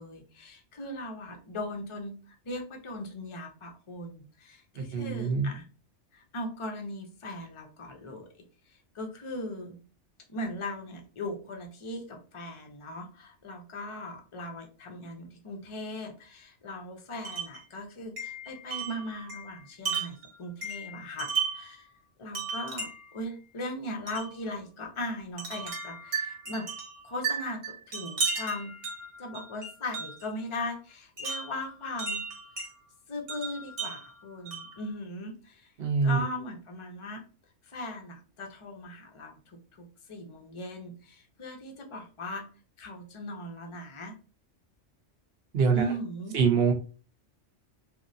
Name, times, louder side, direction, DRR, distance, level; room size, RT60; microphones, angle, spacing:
voice 1, 0.0-5.6 6.1-8.3 8.7-9.8 10.3-21.9 22.2-26.7 27.0-28.7 29.2-32.2 33.1-35.7 36.0-37.2 37.6-42.4 42.8-44.1 45.7-46.4, left 1 dB, 35° left, 3 dB, 0.6 m, -38 dB
voice 2, 4.7-5.5 35.8-36.2 45.5-45.9 46.3-46.7, right 5 dB, 60° right, 5 dB, 0.9 m, -24 dB
Wind chime, 17.2-17.6 18.2-21.7 22.3-23.2 24.1-24.3 25.4-30.3 31.2-32.7 33.3-34.8, right 5 dB, 80° right, 1.4 m, -35 dB
3.1 x 2.6 x 2.6 m, 0.35 s
omnidirectional pair, 1.2 m